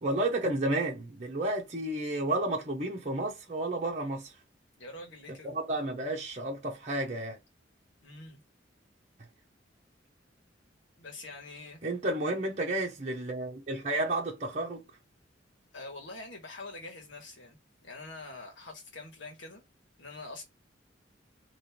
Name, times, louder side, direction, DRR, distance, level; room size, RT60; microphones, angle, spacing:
voice 1, 0.0-4.3 5.4-7.4 11.8-14.8, right 2 dB, 40° right, 1.0 m, -31 dB
voice 2, 4.8-5.5 8.0-8.4 11.0-11.8 15.7-17.6 17.8-19.6 20.0-20.4, left 2 dB, 80° left, 1.7 m, -45 dB
3.6 x 3.1 x 4.4 m
head